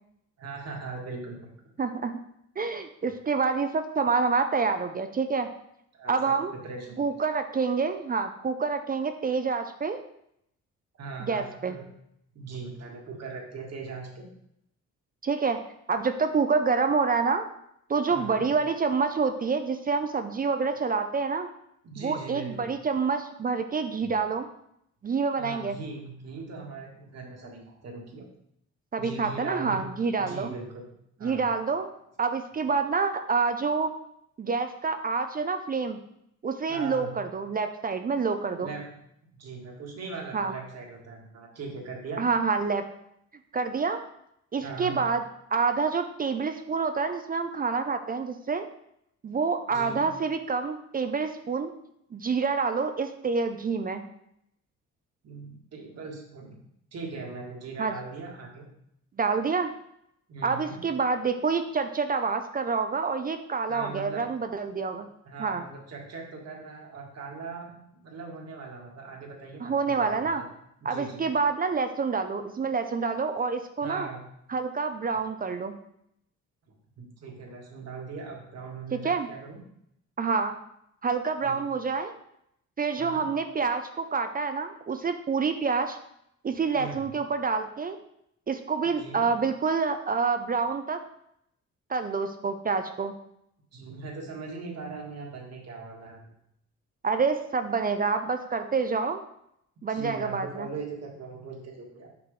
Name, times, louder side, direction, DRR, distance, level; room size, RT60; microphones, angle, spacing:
voice 1, 0.4-1.5 5.9-7.0 11.0-11.8 12.3-14.2 18.1-18.5 21.8-22.7 25.4-28.2 29.0-29.9 30.2-30.9 31.2-31.4 36.7-37.1 38.6-38.9 39.4-42.2 44.6-45.0 49.7-50.0 55.2-56.5 56.9-58.7 60.3-60.8 63.7-64.2 65.3-70.2 70.9-71.2 73.8-74.2 77.0-79.6 81.4-81.7 83.0-83.2 86.7-87.1 89.0-89.3 93.7-96.2 99.9-102.1, right 4 dB, 55° right, 0 dB, 1.7 m, -40 dB
voice 2, 1.8-2.1 2.6-5.5 6.1-6.5 7.0-10.0 11.2-11.8 15.2-15.6 15.9-17.5 17.9-21.5 22.0-24.5 25.0-25.8 28.9-30.5 31.2-31.9 32.2-33.9 34.4-36.0 36.4-38.7 40.3-40.5 42.2-42.8 43.5-44.0 44.5-45.2 45.5-48.7 49.2-51.7 52.1-54.0 57.8-57.9 59.2-59.7 60.4-65.1 65.4-65.6 69.6-70.4 70.8-74.1 74.5-75.7 78.9-79.3 80.2-80.6 81.0-82.1 82.8-86.0 86.4-88.0 88.5-91.0 91.9-93.1 97.0-99.2 99.8-100.7, right 5 dB, 30° right, 8 dB, 0.5 m, -27 dB
5.9 x 5.2 x 3.3 m, 0.75 s
cardioid pair, 90°, 30 cm